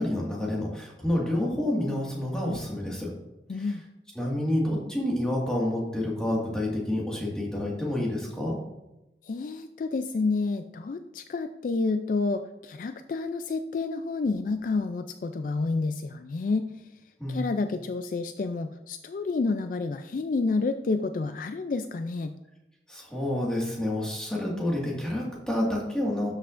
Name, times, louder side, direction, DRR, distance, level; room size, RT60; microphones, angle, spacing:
voice 1, 0.0-3.1 3.5-3.7 4.2-8.6 17.2-17.4 22.9-26.3, left 1 dB, 5° left, -4 dB, 1.7 m, -28 dB
voice 2, 3.5-3.8 9.2-16.7 17.3-22.3, left 3 dB, 50° left, 9 dB, 0.3 m, -29 dB
12.5 x 5.7 x 2.5 m, 0.95 s
head